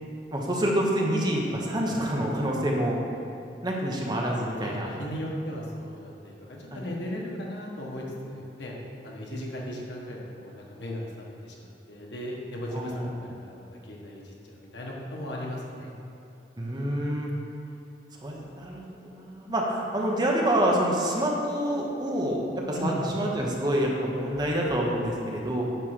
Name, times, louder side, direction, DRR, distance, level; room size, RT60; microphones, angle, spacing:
voice 1, 0.3-3.0 3.6-4.9 6.7-6.9 9.3-9.4 12.7-13.1 16.6-17.3 18.2-25.6, right 1 dB, 25° right, -2 dB, 1.0 m, -27 dB
voice 2, 4.6-6.3 6.6-8.8 9.0-15.9 22.7-23.0, left 1 dB, 85° left, -2 dB, 1.3 m, -37 dB
9.1 x 3.3 x 6.5 m, 2.6 s
head